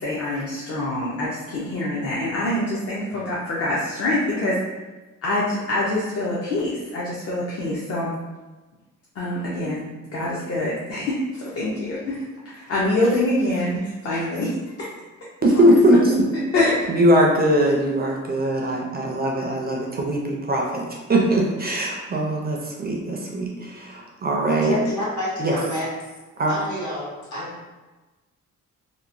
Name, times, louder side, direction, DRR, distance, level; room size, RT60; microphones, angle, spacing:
voice 1, 0.0-4.6 5.2-8.1 9.2-9.9 10.1-14.5 14.8-14.9 15.5-15.6 16.5-16.9, left 1 dB, 50° left, -6 dB, 0.6 m, -25 dB
voice 2, 15.4-16.2 16.9-24.8 25.4-25.6 26.4-26.5, right 1 dB, 30° right, -1 dB, 0.4 m, -20 dB
voice 3, 24.5-25.9 26.5-27.7, left 1 dB, 70° left, -7 dB, 1.3 m, -29 dB
2.9 x 2.0 x 2.5 m, 1.2 s
cardioid pair, 115°, 30 cm